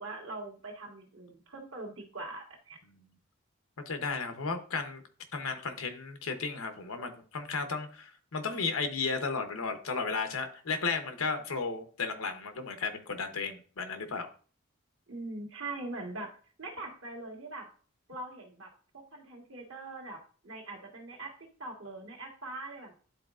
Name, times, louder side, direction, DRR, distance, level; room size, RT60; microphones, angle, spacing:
voice 1, 0.0-2.8 15.1-17.7 18.1-22.9, right 2 dB, 70° right, 1 dB, 1.5 m, -42 dB
voice 2, 3.9-5.0 5.3-14.3, left 4 dB, 90° left, 7 dB, 0.9 m, -34 dB
10.5 x 4.1 x 2.4 m, 0.41 s
head